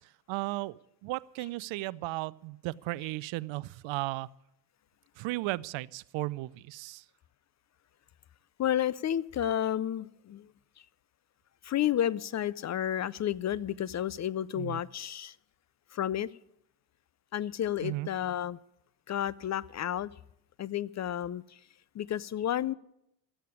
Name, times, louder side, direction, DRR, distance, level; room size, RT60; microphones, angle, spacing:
voice 1, 0.3-4.3 5.2-7.0 14.6-14.8 17.8-18.1, right 19 dB, 65° right, 0.6 m, -35 dB
voice 2, 8.6-10.5 11.6-15.4 15.9-16.3 17.3-18.6 19.1-20.1 20.6-21.6 21.9-22.7, left 11 dB, 35° left, 0.4 m, -31 dB
12.5 x 8.3 x 9.7 m
supercardioid pair, 65°, 50 cm